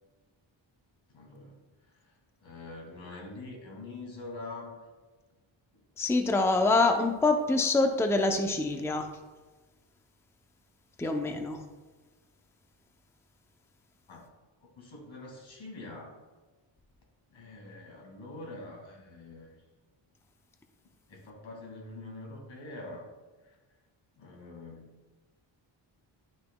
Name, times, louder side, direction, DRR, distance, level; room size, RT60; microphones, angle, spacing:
voice 1, 1.1-1.6 2.4-4.8 14.1-14.2 14.6-16.2 17.3-19.6 21.1-23.1 23.4-23.6 24.2-24.9, left 2 dB, 80° left, -1 dB, 2.3 m, -44 dB
voice 2, 6.0-9.1 11.0-11.6, left 3 dB, 5° left, 4 dB, 0.6 m, -25 dB
11.5 x 5.8 x 2.3 m, 1.3 s
wide cardioid pair, 105°, 46 cm